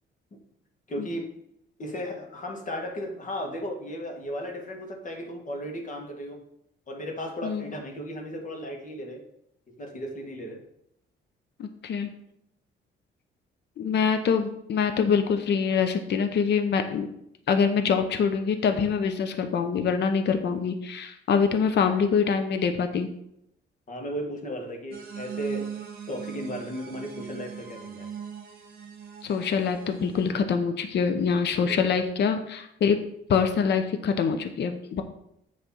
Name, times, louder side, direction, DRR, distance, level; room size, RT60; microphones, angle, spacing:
voice 1, 0.9-1.3 1.8-6.4 6.9-9.2 9.8-10.6 23.9-25.7 26.1-28.1 31.5-32.0, equal, 40° left, 2 dB, 1.7 m, -35 dB
voice 2, 11.6-12.1 13.8-17.1 17.5-23.1 29.2-33.0 33.3-35.0, left 6 dB, 60° left, 7 dB, 0.8 m, -25 dB
sound 1, 24.9-30.3, right 7 dB, 50° right, 1.5 m, -40 dB
8.2 x 3.3 x 5.6 m, 0.77 s
cardioid pair, 90°, 20 cm